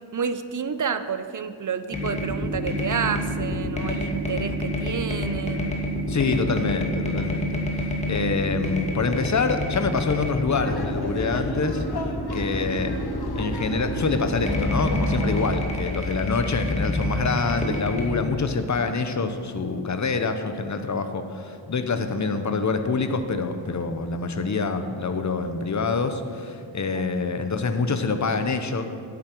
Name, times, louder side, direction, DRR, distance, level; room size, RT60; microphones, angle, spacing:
voice 1, 0.0-5.7 26.9-27.1, right 6 dB, 40° right, 10 dB, 0.6 m, -30 dB
sound 1, 1.9-18.1, equal, 15° left, 2.0 m, -28 dB
voice 2, 6.1-11.8 12.3-12.9 13.3-28.8, left 4 dB, 40° left, 8 dB, 0.8 m, -26 dB
Laughter, 10.5-15.6, left 3 dB, 55° left, 1.1 m, -35 dB
11.0 x 9.0 x 4.6 m, 2.3 s
wide cardioid pair, 90°, 47 cm